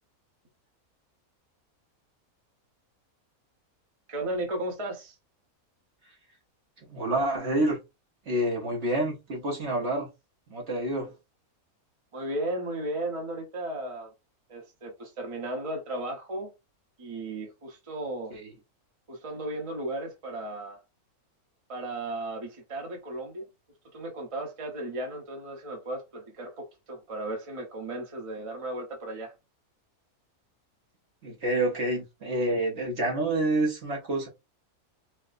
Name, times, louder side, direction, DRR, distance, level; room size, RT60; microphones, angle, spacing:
voice 1, 4.1-5.1 12.1-14.1 14.5-16.5 17.0-18.3 19.1-20.8 21.7-23.5 23.9-29.3, right 1 dB, 25° right, 0.9 m, -35 dB
voice 2, 6.9-7.8 8.3-10.1 10.5-11.1 18.3-18.5 31.2-34.3, right 1 dB, 50° right, 1.1 m, -28 dB
4.5 x 2.2 x 2.4 m
omnidirectional pair, 1.6 m